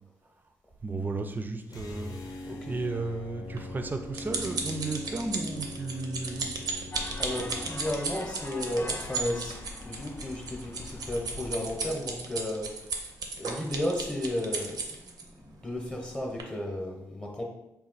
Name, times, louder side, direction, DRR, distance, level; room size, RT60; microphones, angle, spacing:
voice 1, 0.8-6.5, right 3 dB, 25° right, 6 dB, 0.4 m, -34 dB
sound 1, 1.7-8.0, left 1 dB, 70° left, 0.7 m, -41 dB
voice 2, 2.5-2.8 7.2-13.1 13.4-17.4, left 1 dB, 15° left, 0 dB, 0.8 m, -34 dB
sound 2, 3.6-15.2 15.9-16.1 16.4-16.5, right 4 dB, 75° right, 0.6 m, -35 dB
sound 3, 6.9-12.2, left 3 dB, 35° left, 0.4 m, -43 dB
4.1 x 2.3 x 3.9 m, 0.90 s
cardioid pair, 85°, 7 cm